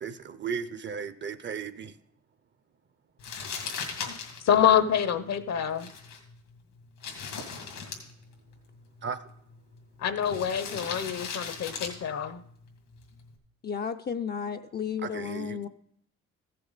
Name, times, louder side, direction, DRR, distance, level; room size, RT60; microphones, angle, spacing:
voice 1, 0.0-1.9 9.0-9.2 15.0-15.7, right 6 dB, 40° right, 0.6 m, -35 dB
Crumpling crinkling, 3.2-13.4, left 5 dB, 85° left, 2.2 m, -41 dB
voice 2, 4.4-5.9 10.0-12.4, left 9 dB, 60° left, 0.8 m, -26 dB
voice 3, 13.6-15.7, left 7 dB, 35° left, 0.5 m, -33 dB
14.5 x 6.8 x 4.0 m
cardioid pair, 90°, 30 cm